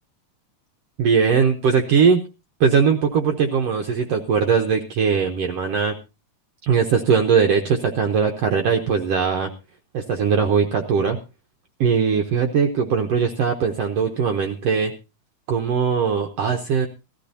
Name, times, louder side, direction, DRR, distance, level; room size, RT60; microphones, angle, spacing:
voice 1, 1.0-2.2 2.6-5.9 6.7-9.5 9.9-11.2 11.8-14.9 15.5-16.9, right 6 dB, 70° right, 4 dB, 1.6 m, -20 dB
18.5 x 13.5 x 2.7 m, 0.27 s
omnidirectional pair, 3.6 m